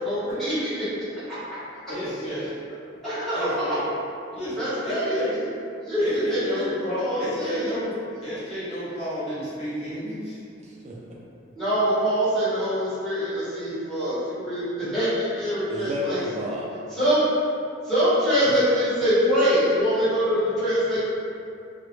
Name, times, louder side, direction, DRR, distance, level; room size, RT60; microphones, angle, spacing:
voice 1, 0.0-0.9 1.3-1.4 3.0-3.8 4.6-5.2 5.8-6.6 7.0-7.7 11.5-16.2 16.9-17.2 17.8-21.0, equal, ahead, -14 dB, 0.9 m, -24 dB
voice 2, 1.9-2.5 3.3-3.9 4.3-5.4 6.0-7.9 8.2-10.4 18.4-18.6, equal, 30° left, -11 dB, 0.7 m, -31 dB
voice 3, 10.6-10.9 15.7-16.7, left 1 dB, 35° right, -5 dB, 0.4 m, -31 dB
2.2 x 2.1 x 3.0 m, 2.5 s
head